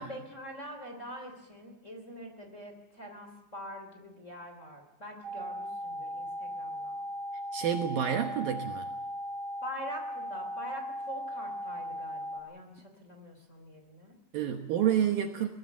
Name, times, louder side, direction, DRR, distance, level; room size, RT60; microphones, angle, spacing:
voice 1, 0.0-7.0 9.6-14.1, equal, 20° left, 3 dB, 2.8 m, -44 dB
sound 1, 5.2-12.4, equal, 35° right, 3.8 m, -38 dB
voice 2, 7.5-8.9 14.3-15.5, right 9 dB, 65° right, 5 dB, 2.6 m, -29 dB
22.0 x 20.0 x 7.2 m, 0.99 s
omnidirectional pair, 5.1 m